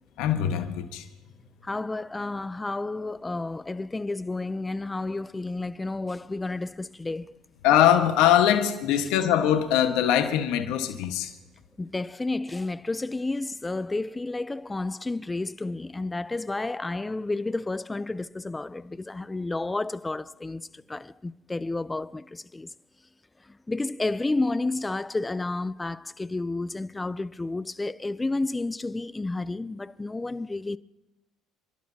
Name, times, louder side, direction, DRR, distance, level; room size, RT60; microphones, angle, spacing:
voice 1, 0.2-1.1 7.6-11.3, left 10 dB, 75° left, 1.4 m, -22 dB
voice 2, 1.6-7.3 11.8-22.7 23.7-30.8, left 2 dB, 15° left, 0.5 m, -31 dB
29.5 x 12.0 x 2.9 m
supercardioid pair, 80°, 0 cm